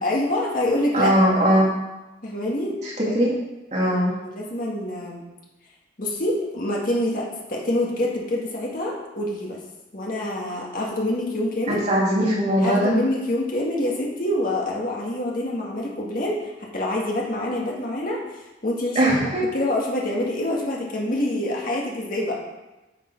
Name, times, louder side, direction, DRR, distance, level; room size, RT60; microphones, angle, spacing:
voice 1, 0.0-1.1 2.2-3.1 3.8-5.2 6.0-9.6 9.9-11.8 12.6-18.2 18.6-22.4, left 1 dB, 50° left, -3 dB, 1.9 m, -26 dB
voice 2, 0.9-1.7 2.8-3.3 3.7-4.1 11.9-13.0 18.9-19.4, equal, 40° right, -5 dB, 2.6 m, -20 dB
9.2 x 7.0 x 4.6 m, 1.0 s
head